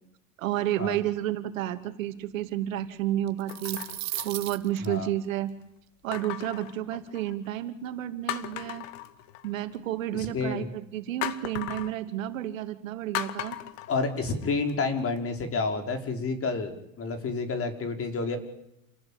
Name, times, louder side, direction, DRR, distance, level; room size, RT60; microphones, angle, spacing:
voice 1, 0.4-3.8 4.2-5.5 6.0-8.8 9.4-13.6, right 13 dB, 85° right, 9 dB, 2.6 m, -31 dB
sound 1, 0.6-1.1 1.7-1.9 3.5-5.0 6.1-7.5 7.9-8.0 8.3-9.8 11.2-12.0 13.1-14.7 15.2-15.3, left 12 dB, 75° left, 1.9 m, -37 dB
sound 2, 3.3-4.9, right 15 dB, 45° right, 1.4 m, -35 dB
voice 2, 10.1-10.7 13.9-18.4, left 4 dB, 35° left, 6 dB, 5.2 m, -29 dB
28.5 x 18.5 x 8.9 m, 0.86 s
hypercardioid pair, 95°, 39 cm